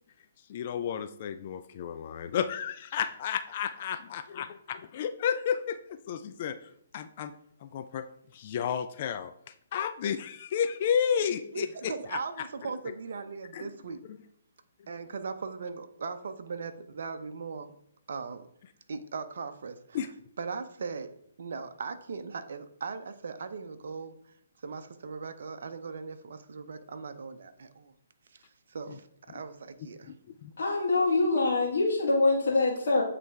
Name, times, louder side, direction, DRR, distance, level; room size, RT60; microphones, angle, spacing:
voice 1, 0.5-5.8 6.1-6.6 6.9-7.3 7.6-8.0 8.4-9.3 9.7-11.9 13.5-13.6 19.9-20.1 30.4-30.5, left 8 dB, 45° left, 10 dB, 0.4 m, -31 dB
voice 2, 11.5-14.0 14.9-17.7 18.1-18.4 18.9-20.1 20.4-24.1 24.6-27.9 28.7-30.1, right 5 dB, 65° right, 8 dB, 0.6 m, -39 dB
voice 3, 30.6-33.0, left 3 dB, 65° left, -5 dB, 1.5 m, -24 dB
8.3 x 3.3 x 3.4 m, 0.68 s
figure-of-eight pair, 135°, 0 cm